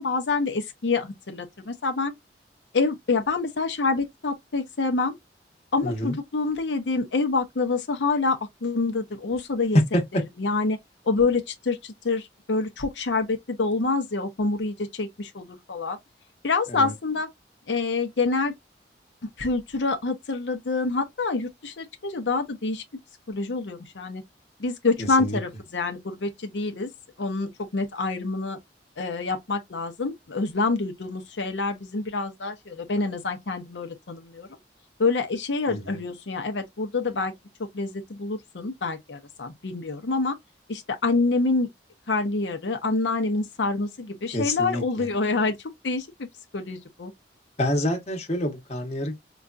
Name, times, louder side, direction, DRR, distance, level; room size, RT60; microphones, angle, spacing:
voice 1, 0.0-2.1 2.7-5.2 5.7-9.8 10.1-10.8 11.0-16.0 16.4-17.3 17.7-18.5 19.4-22.8 23.3-24.2 24.6-26.9 27.2-28.6 29.0-34.5 35.0-37.3 37.6-40.4 40.7-41.7 42.1-45.6 45.8-46.3 46.5-47.1, left 3 dB, 85° left, 0.7 m, -27 dB
voice 2, 5.8-6.1 9.9-10.0 16.7-16.9 25.0-25.4 35.7-36.0 44.3-45.1 47.6-49.1, left 1 dB, 40° left, 1.1 m, -28 dB
4.9 x 2.3 x 2.4 m
head